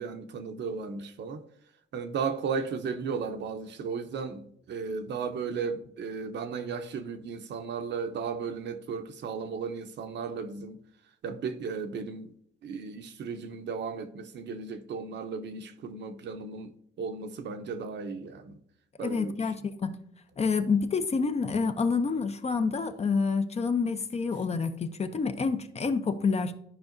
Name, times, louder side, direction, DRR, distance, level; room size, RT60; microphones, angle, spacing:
voice 1, 0.0-1.4 1.9-10.8 11.2-12.3 12.6-16.7 17.0-18.6 19.0-19.5, right 5 dB, 65° right, 0.8 m, -35 dB
voice 2, 19.0-19.9 20.4-26.5, left 5 dB, 30° left, 0.6 m, -28 dB
12.0 x 4.7 x 2.6 m
cardioid pair, 90°, 20 cm